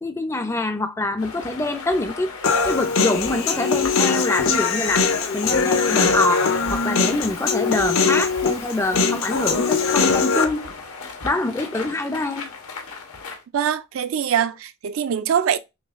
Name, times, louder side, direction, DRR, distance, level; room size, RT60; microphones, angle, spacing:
voice 1, 0.0-2.3 2.6-5.1 5.3-10.7 11.2-12.5, left 2 dB, 10° left, 0.4 m, -25 dB
sound 1, 1.2-13.4, left 3 dB, 90° left, 1.1 m, -35 dB
Human voice, 2.4-10.4, left 5 dB, 70° left, 0.6 m, -21 dB
voice 2, 13.5-15.6, right 8 dB, 70° right, 0.4 m, -23 dB
6.3 x 2.2 x 2.4 m
head